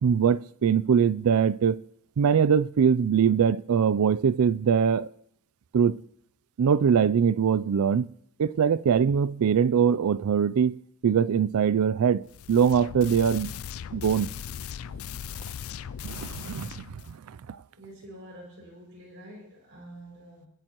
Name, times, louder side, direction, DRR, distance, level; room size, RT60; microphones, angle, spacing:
voice 1, 0.0-1.8 2.2-5.1 5.7-6.0 6.6-8.1 8.4-13.5 13.9-14.3 16.0-17.6, right 7 dB, 75° right, 0.4 m, -23 dB
sound 1, 12.3-17.1, left 8 dB, 70° left, 0.4 m, -38 dB
voice 2, 17.8-20.5, right 1 dB, 60° right, 6.1 m, -47 dB
22.5 x 11.0 x 3.0 m
head